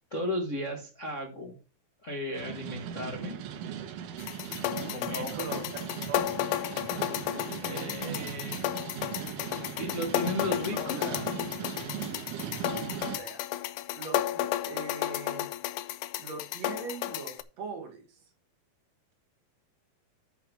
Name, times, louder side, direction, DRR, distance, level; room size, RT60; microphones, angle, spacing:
voice 1, 0.1-1.5 2.0-3.4 4.8-5.3 7.6-8.7 9.8-11.0, left 1 dB, 35° left, 0 dB, 1.2 m, -35 dB
sound 1, 2.3-13.2, right 9 dB, 80° right, 2.5 m, -38 dB
sound 2, 4.2-17.4, left 14 dB, 80° left, 2.1 m, -33 dB
voice 2, 5.0-5.7 6.1-6.4 10.6-11.3 13.1-13.4 13.9-15.5 16.2-18.2, right 3 dB, 55° right, 4 dB, 2.7 m, -40 dB
9.7 x 4.7 x 5.7 m, 0.33 s
omnidirectional pair, 3.8 m